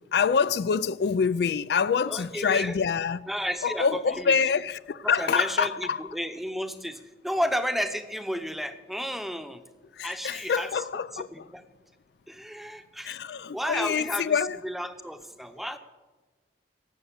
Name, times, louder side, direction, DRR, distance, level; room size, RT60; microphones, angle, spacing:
voice 1, 0.1-3.3 3.6-6.0 9.9-11.5 13.0-14.6, left 6 dB, 65° left, 0.4 m, -26 dB
voice 2, 2.1-2.8 3.3-4.4 5.0-9.6 10.0-10.7 11.1-11.6 12.3-13.2 13.5-15.8, equal, ahead, 0.8 m, -32 dB
18.0 x 7.8 x 8.2 m
head